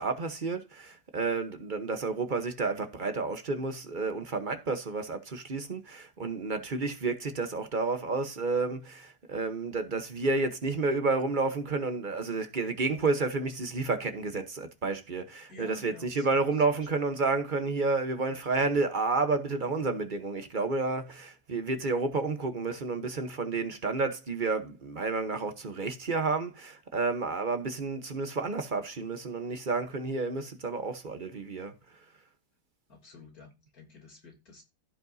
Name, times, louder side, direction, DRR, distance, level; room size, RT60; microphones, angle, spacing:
voice 1, 0.0-31.7, right 3 dB, 35° right, 0.9 m, -30 dB
voice 2, 15.5-16.4 16.7-16.9 32.9-34.6, left 3 dB, 60° left, 3.5 m, -51 dB
15.5 x 5.2 x 2.7 m
omnidirectional pair, 1.8 m